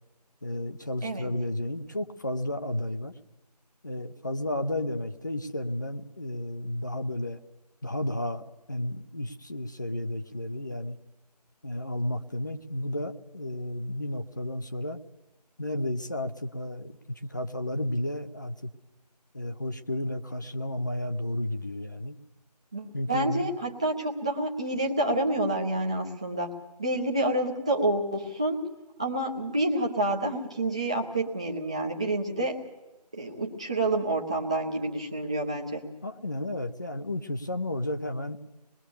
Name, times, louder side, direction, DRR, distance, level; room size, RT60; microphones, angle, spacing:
voice 1, 0.4-3.1 3.8-7.4 7.8-11.0 11.6-15.0 15.6-18.7 19.3-22.2 22.9-23.5 36.0-38.4, left 1 dB, 30° left, 7 dB, 0.8 m, -32 dB
voice 2, 22.7-26.5 26.8-28.7 29.0-32.6 33.1-35.8, right 1 dB, 10° right, 0 dB, 0.8 m, -28 dB
25.5 x 21.0 x 7.0 m, 1.0 s
figure-of-eight pair, 165°, 21 cm